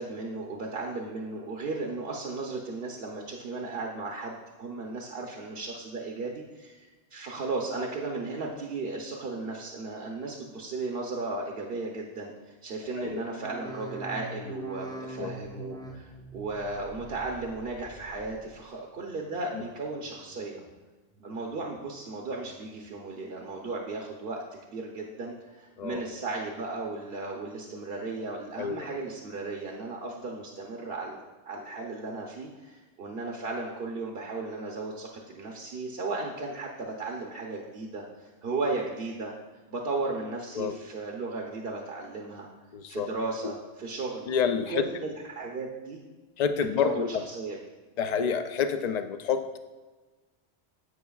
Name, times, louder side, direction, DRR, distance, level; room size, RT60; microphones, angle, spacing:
voice 1, 0.0-20.6 21.2-39.3 39.7-42.5 42.9-44.2 44.7-46.0 46.8-47.6, right 3 dB, 60° right, 0 dB, 1.0 m, -35 dB
sound 1, 13.3-18.6 18.9-19.6 20.0-20.7 21.1-21.8 22.2-22.9 23.3-23.9 24.5-24.6, right 1 dB, 5° left, 0.5 m, -45 dB
voice 2, 42.7-43.1 44.3-44.8 46.4-47.2 48.0-49.6, left 6 dB, 50° left, 9 dB, 0.5 m, -28 dB
11.0 x 8.1 x 2.4 m, 1.3 s
omnidirectional pair, 1.2 m